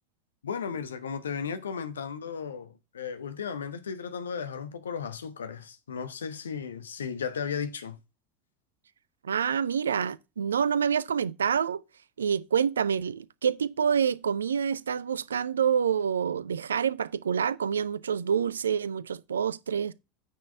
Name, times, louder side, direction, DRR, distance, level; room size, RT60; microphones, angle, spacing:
voice 1, 0.4-8.0, left 6 dB, 75° left, 1.1 m, -35 dB
voice 2, 9.2-11.8 12.2-19.9, right 7 dB, 75° right, 0.5 m, -27 dB
9.4 x 6.2 x 3.4 m
figure-of-eight pair, 75°, 0 cm